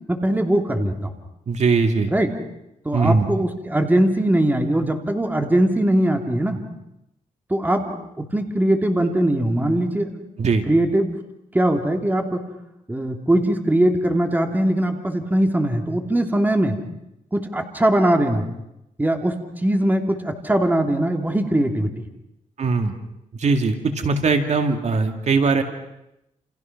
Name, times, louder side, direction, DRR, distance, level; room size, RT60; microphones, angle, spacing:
voice 1, 0.1-1.1 2.1-2.3 2.8-6.6 7.5-10.1 10.7-11.1 11.5-12.4 12.9-16.8 17.3-18.5 19.0-19.4 19.6-21.9, right 1 dB, 15° right, 4 dB, 2.9 m, -21 dB
voice 2, 1.5-2.1 2.9-3.3 10.4-10.6 22.6-23.0 23.3-25.6, right 4 dB, 55° right, 5 dB, 2.3 m, -20 dB
29.5 x 28.5 x 6.0 m, 0.86 s
wide cardioid pair, 120°, 14 cm